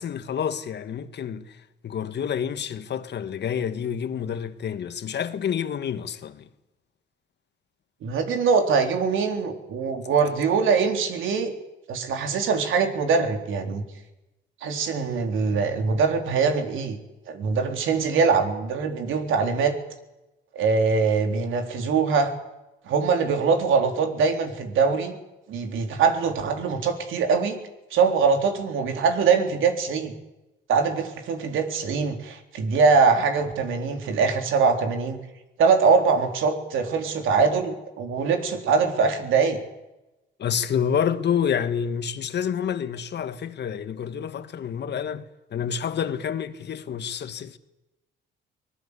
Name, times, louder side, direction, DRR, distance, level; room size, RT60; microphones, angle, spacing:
voice 1, 0.0-1.5 1.8-6.5 40.4-45.2 45.5-47.6, left 8 dB, 60° left, 1.7 m, -28 dB
voice 2, 8.0-11.5 11.9-13.8 14.6-17.0 17.3-19.7 20.5-22.3 22.9-25.1 25.5-27.6 27.9-30.1 30.7-35.2 35.6-39.6, right 5 dB, 80° right, 4.0 m, -22 dB
24.5 x 19.5 x 8.5 m
cardioid pair, 90°, 20 cm